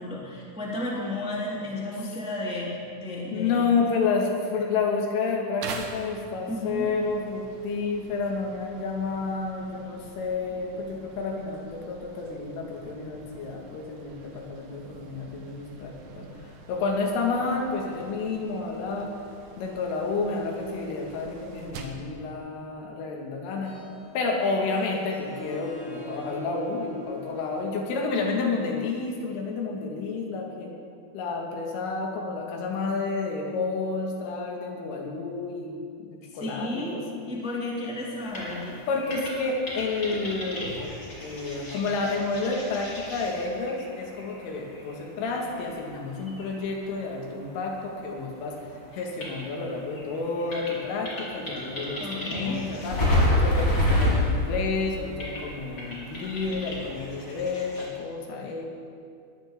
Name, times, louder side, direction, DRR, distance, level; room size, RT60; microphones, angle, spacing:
voice 1, 0.0-3.8 6.5-6.9 36.3-37.0 37.2-38.8 52.0-52.6, left 1 dB, ahead, -5 dB, 2.1 m, -33 dB
voice 2, 1.3-1.9 3.3-19.1 19.6-23.8 24.1-30.7 31.1-37.3 38.9-40.9 41.2-48.6 48.9-53.1 53.4-58.7, left 4 dB, 85° left, 0 dB, 4.5 m, -30 dB
sound 1, 5.6-22.1, right 4 dB, 80° right, 1.8 m, -45 dB
Harp, 23.5-29.0, left 3 dB, 65° left, 7.1 m, -42 dB
sound 2, 38.2-48.2 48.5-57.8, left 1 dB, 25° left, 4.3 m, -30 dB
22.0 x 17.0 x 3.8 m, 2.3 s
omnidirectional pair, 5.6 m